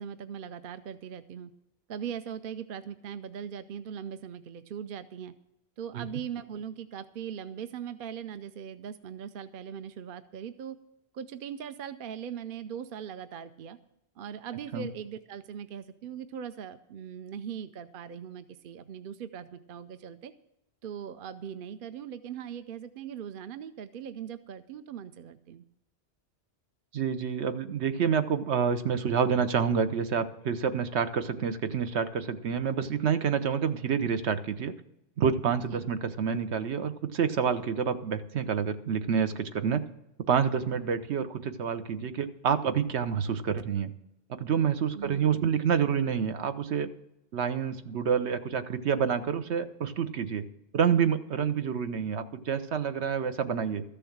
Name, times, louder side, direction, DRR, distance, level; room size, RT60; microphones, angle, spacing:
voice 1, 0.0-1.5 1.9-5.3 5.8-10.8 11.1-13.8 14.2-20.3 20.8-25.6 35.7-35.9 44.9-45.5, right 8 dB, 60° right, 11 dB, 0.7 m, -40 dB
voice 2, 26.9-34.7 35.2-39.8 40.3-43.9 44.4-46.9 47.3-50.4 50.7-53.8, right 7 dB, 85° right, 10 dB, 1.1 m, -28 dB
13.5 x 6.9 x 7.2 m, 0.85 s
omnidirectional pair, 1.1 m